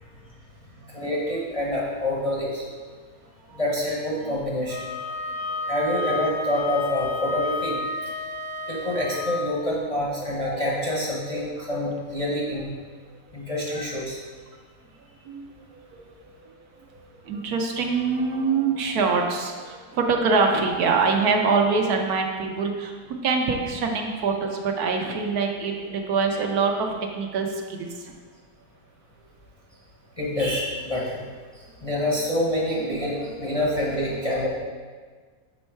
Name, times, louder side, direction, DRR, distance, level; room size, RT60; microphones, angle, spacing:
voice 1, 0.9-2.7 3.5-4.8 5.7-7.8 8.7-12.7 13.3-14.2 30.2-31.2 31.5-34.5, left 1 dB, 30° left, -5 dB, 0.7 m, -27 dB
Wind instrument woodwind instrument, 4.7-9.4, left 3 dB, 70° left, 1.0 m, -31 dB
voice 2, 9.1-9.4 10.1-10.6 15.3-15.5 15.9-16.0 17.3-27.9 32.7-33.7 34.2-34.5, right 4 dB, 70° right, 2 dB, 1.2 m, -25 dB
6.4 x 4.2 x 4.4 m, 1.5 s
omnidirectional pair, 1.7 m